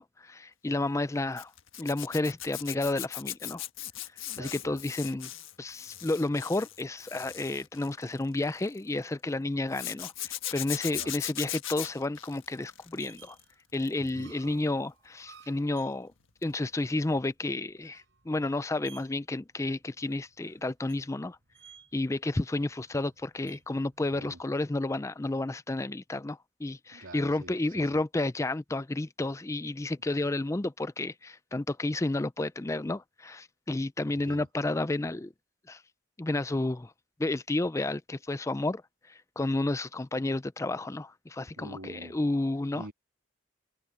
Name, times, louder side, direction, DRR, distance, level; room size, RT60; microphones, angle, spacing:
voice 1, 0.0-1.5 1.8-3.6 4.4-5.3 5.6-13.4 13.7-16.1 16.4-21.4 21.9-35.3 35.7-35.8 36.2-36.9 37.2-38.8 39.1-42.8, left 2 dB, 15° left, 0.4 m, -31 dB
Zipper (clothing), 1.4-8.8 9.7-13.4 13.7-14.1 16.4-16.6 16.8-16.9, left 13 dB, 75° left, 1.5 m, -39 dB
voice 2, 4.3-4.8 10.9-11.1 14.0-14.5 24.1-24.4 26.9-28.0 34.1-34.5 41.6-42.2 42.7-42.9, right 1 dB, 90° right, 2.9 m, -46 dB
sound 1, 11.2-24.4, right 7 dB, 60° right, 4.5 m, -58 dB
head